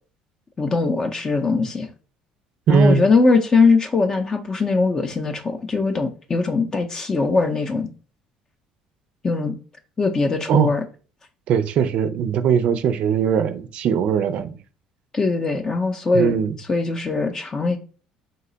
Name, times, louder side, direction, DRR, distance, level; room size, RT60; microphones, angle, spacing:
voice 1, 0.6-1.9 2.7-7.9 9.2-9.5 10.0-10.8 15.1-16.3 16.7-17.8, left 3 dB, 25° left, 0.5 m, -21 dB
voice 2, 2.7-3.0 10.5-10.7 11.5-14.6 16.1-16.5, right 6 dB, 60° right, 0.4 m, -20 dB
4.0 x 2.2 x 3.8 m
cardioid pair, 105°, 2 cm